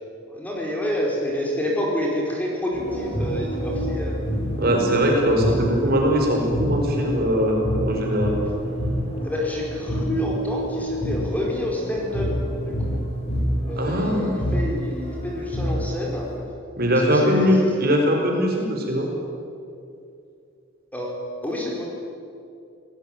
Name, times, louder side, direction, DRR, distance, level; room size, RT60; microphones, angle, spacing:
voice 1, 0.3-4.2 9.2-12.3 12.6-13.0 13.7-16.3 16.9-17.6 20.9-21.9, left 1 dB, 5° left, -2 dB, 4.7 m, -28 dB
sound 1, 2.7-16.4, equal, 30° left, 6.0 m, -28 dB
voice 2, 4.6-8.3 13.8-14.4 16.8-19.1, equal, 45° right, 1 dB, 5.1 m, -21 dB
26.0 x 19.0 x 9.3 m, 2.5 s
head